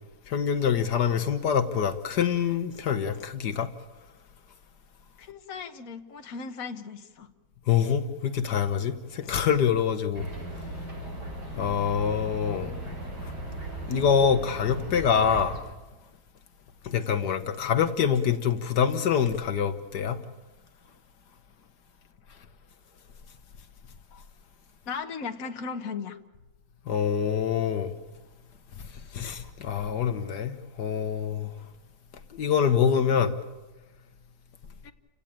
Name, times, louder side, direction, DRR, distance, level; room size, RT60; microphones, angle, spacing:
voice 1, 0.3-3.7 7.7-10.3 11.6-12.8 13.9-15.6 16.8-20.2 26.9-27.9 29.1-31.5 32.4-33.3, left 7 dB, 80° left, 1.7 m, -25 dB
voice 2, 5.2-7.3 24.9-26.2 34.8-34.9, left 5 dB, 55° left, 1.7 m, -37 dB
sound 1, 10.1-15.6, right 1 dB, 75° right, 6.0 m, -37 dB
30.0 x 17.5 x 8.8 m
omnidirectional pair, 1.8 m